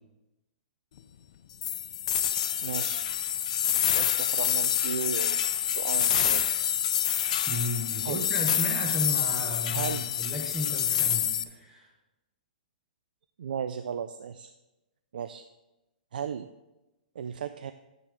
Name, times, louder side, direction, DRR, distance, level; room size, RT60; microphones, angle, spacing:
sound 1, 1.6-11.4, left 10 dB, 50° left, 0.4 m, -27 dB
voice 1, 2.6-3.1 3.9-5.4 5.7-6.4 8.0-8.2 9.7-10.1 13.4-14.5 15.1-15.4 16.1-16.5 17.2-17.7, right 7 dB, 70° right, 11 dB, 0.3 m, -35 dB
voice 2, 7.5-11.9, equal, 10° right, -1 dB, 0.8 m, -34 dB
9.0 x 6.8 x 3.3 m, 1.0 s
hypercardioid pair, 165°, 5 cm